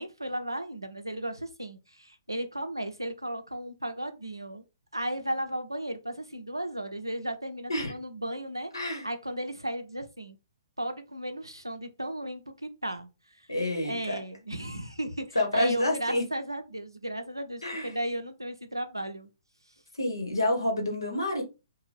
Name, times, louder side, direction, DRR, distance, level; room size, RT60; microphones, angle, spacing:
voice 1, 0.0-4.6 4.9-8.7 9.0-10.4 10.8-13.5 13.8-19.3, right 1 dB, 85° right, 0.5 m, -35 dB
voice 2, 13.5-14.1 15.3-16.2 17.6-17.9 20.0-21.4, left 1 dB, 75° left, 1.0 m, -28 dB
2.6 x 2.2 x 3.3 m
figure-of-eight pair, 120°, 2 cm